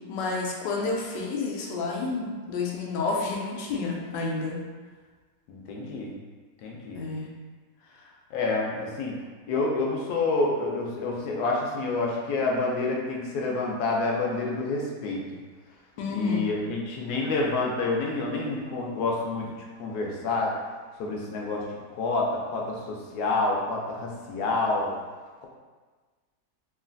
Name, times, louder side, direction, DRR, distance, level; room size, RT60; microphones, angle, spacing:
voice 1, 0.1-4.6 6.9-7.3 16.0-16.4, left 3 dB, 90° left, -1 dB, 1.3 m, -30 dB
voice 2, 5.5-6.1 6.6-7.0 8.3-9.1 9.5-15.3 16.1-19.5 19.8-20.5 21.0-21.6 21.9-24.9, left 3 dB, 70° left, -2 dB, 1.0 m, -28 dB
3.1 x 2.4 x 2.5 m, 1.4 s
omnidirectional pair, 1.9 m